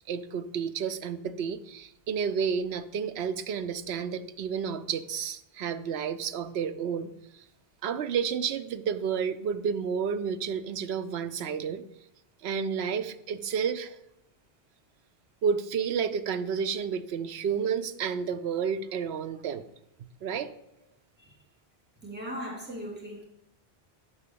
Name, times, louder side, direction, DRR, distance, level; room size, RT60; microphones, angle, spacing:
voice 1, 0.1-7.4 7.8-11.8 12.4-14.0 15.4-19.7 20.2-20.5, right 6 dB, 85° right, 10 dB, 0.9 m, -31 dB
voice 2, 22.0-23.2, equal, 10° right, -3 dB, 2.2 m, -38 dB
10.0 x 4.1 x 6.8 m, 0.85 s
omnidirectional pair, 1.0 m